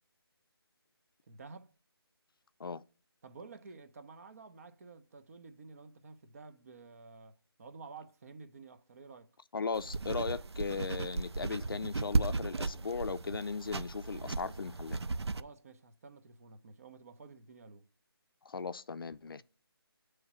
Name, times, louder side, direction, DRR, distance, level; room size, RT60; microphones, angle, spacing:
voice 1, 1.3-1.7 3.2-9.3 15.2-17.9, right 4 dB, 35° right, 0.7 m, -52 dB
voice 2, 9.5-15.0 18.5-19.4, left 5 dB, 60° left, 0.4 m, -37 dB
sound 1, 9.7-15.4, right 3 dB, 80° right, 0.4 m, -35 dB
8.7 x 3.2 x 6.0 m
figure-of-eight pair, 155°, 13 cm